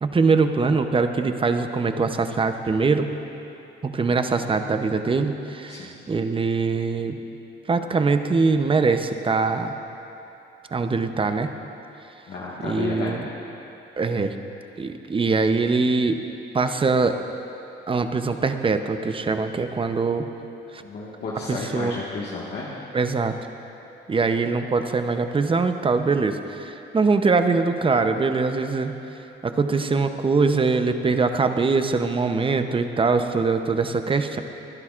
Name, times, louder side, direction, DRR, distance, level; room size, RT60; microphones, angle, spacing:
voice 1, 0.0-3.1 3.8-7.2 7.7-9.7 10.7-11.5 12.6-13.2 14.0-14.3 14.8-16.2 16.5-17.2 17.9-20.2 20.7-20.8 21.5-22.0 22.9-23.3 24.1-28.9 29.4-34.4, right 4 dB, 25° right, 7 dB, 0.7 m, -22 dB
voice 2, 12.3-13.2 20.8-22.9, left 3 dB, 60° left, -6 dB, 1.6 m, -32 dB
22.5 x 11.5 x 2.5 m, 3.0 s
cardioid pair, 90°, 20 cm